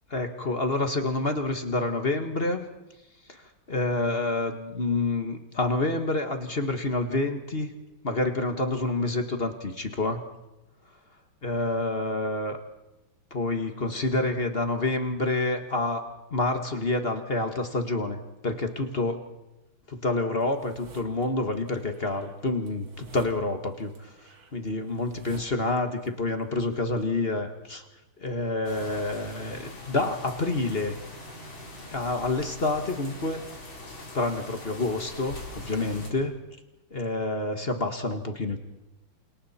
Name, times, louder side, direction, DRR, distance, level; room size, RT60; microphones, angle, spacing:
voice 1, 0.1-2.7 3.3-7.7 8.0-10.2 11.4-12.6 13.3-16.0 16.3-19.2 19.9-24.1 24.5-27.8 28.2-31.0 31.9-33.4 34.1-36.3 36.9-38.6, left 2 dB, 30° left, 5 dB, 1.6 m, -28 dB
sound 1, 20.4-21.3 21.7-26.1 26.4-27.3, right 4 dB, 80° right, 2.9 m, -49 dB
sound 2, 28.6-36.1, left 2 dB, 65° left, 5.0 m, -43 dB
28.5 x 28.0 x 4.3 m, 0.98 s
omnidirectional pair, 2.3 m